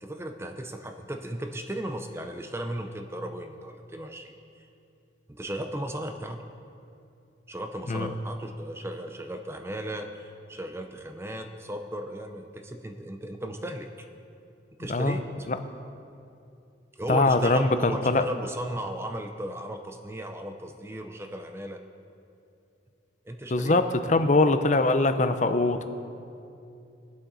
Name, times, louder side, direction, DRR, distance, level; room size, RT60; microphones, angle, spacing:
voice 1, 0.0-4.7 5.3-6.5 7.5-13.9 14.8-15.2 16.9-21.8 23.3-23.8 24.3-24.4, right 1 dB, 15° right, 5 dB, 0.5 m, -36 dB
voice 2, 14.9-15.2 15.5-15.6 17.1-18.2 23.5-25.8, left 2 dB, 40° left, 9 dB, 0.6 m, -22 dB
22.0 x 7.7 x 4.0 m, 2.6 s
head